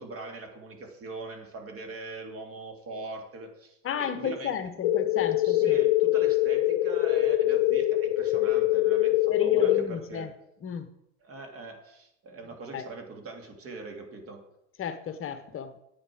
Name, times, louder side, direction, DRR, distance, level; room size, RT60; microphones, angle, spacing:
voice 1, 0.0-4.6 5.4-10.3 11.2-14.4, right 3 dB, 35° right, 3 dB, 3.0 m, -41 dB
voice 2, 3.8-5.8 9.3-10.3 10.6-10.9 12.7-12.8 14.8-15.7, left 8 dB, 35° left, 9 dB, 1.1 m, -32 dB
sound 1, 4.8-9.8, left 15 dB, 65° left, 0.9 m, -24 dB
9.9 x 8.6 x 6.3 m, 0.83 s
hypercardioid pair, 95°, 37 cm